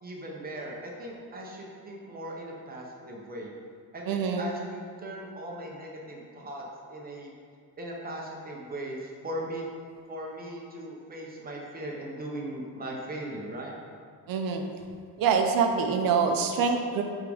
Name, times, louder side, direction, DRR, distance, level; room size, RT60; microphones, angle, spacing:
voice 1, 0.0-3.5 3.9-7.3 7.8-9.6 10.1-13.7, right 1 dB, 25° right, -2 dB, 0.7 m, -38 dB
voice 2, 4.1-4.5 14.3-14.6 15.2-17.0, right 5 dB, 60° right, 4 dB, 0.7 m, -25 dB
9.5 x 3.7 x 3.5 m, 2.2 s
cardioid pair, 180°, 39 cm